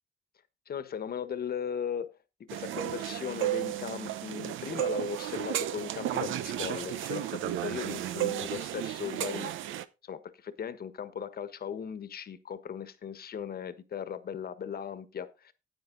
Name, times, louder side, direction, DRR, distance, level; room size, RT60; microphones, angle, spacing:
voice 1, 0.7-2.1 2.5-9.5 10.0-15.5, left 7 dB, 50° left, 1.3 m, -37 dB
sound 1, 2.5-9.8, right 13 dB, 80° right, 0.8 m, -33 dB
10.0 x 8.8 x 3.9 m
cardioid pair, 90°, 20 cm